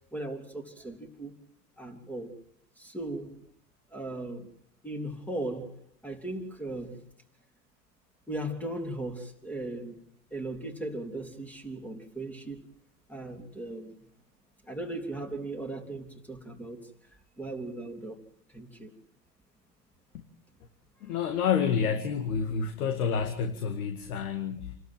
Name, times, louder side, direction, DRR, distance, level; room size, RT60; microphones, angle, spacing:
voice 1, 0.1-1.4 1.8-2.3 2.8-3.4 3.9-4.5 4.8-7.0 8.3-10.0 10.3-12.6 13.1-13.9 14.7-16.9 17.4-18.2 18.5-18.9 21.0-21.3, right 2 dB, 5° left, 4 dB, 3.4 m, -37 dB
voice 2, 21.0-24.8, left 7 dB, 60° left, 7 dB, 2.2 m, -29 dB
28.5 x 13.0 x 7.8 m, 0.66 s
hypercardioid pair, 95°, 49 cm